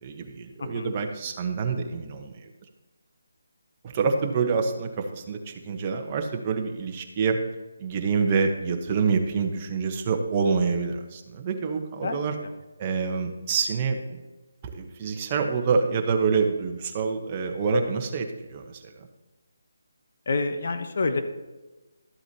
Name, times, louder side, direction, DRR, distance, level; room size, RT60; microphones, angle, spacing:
voice 1, 0.0-2.4 3.8-7.4 7.8-12.3 12.8-14.2 14.6-19.1, right 5 dB, 30° right, 3 dB, 1.1 m, -27 dB
voice 2, 0.6-0.9 12.0-12.5 20.3-21.2, left 3 dB, 55° left, 7 dB, 1.1 m, -28 dB
13.0 x 7.9 x 3.0 m, 1.2 s
figure-of-eight pair, 155°, 0 cm